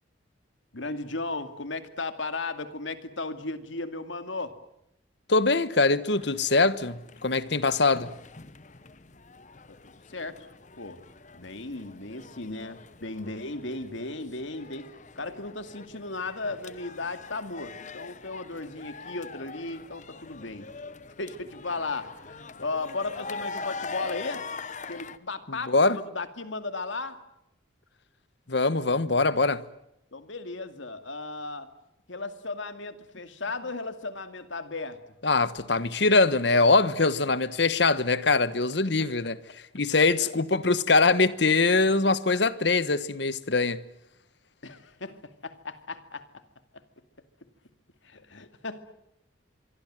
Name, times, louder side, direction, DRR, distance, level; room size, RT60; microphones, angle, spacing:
voice 1, 0.7-4.5 9.8-10.5 10.8-11.0 11.3-20.7 21.2-24.4 24.9-27.2 30.1-31.7 32.1-35.0 40.2-40.3 44.6-46.4 48.0-48.8, left 3 dB, 75° left, 2.3 m, -36 dB
voice 2, 5.3-8.1 25.5-26.0 28.5-29.6 35.2-39.4 39.7-43.8, left 3 dB, 60° left, 1.3 m, -23 dB
sound 1, 6.1-25.2, left 4 dB, 40° left, 1.0 m, -43 dB
26.0 x 24.0 x 7.7 m
head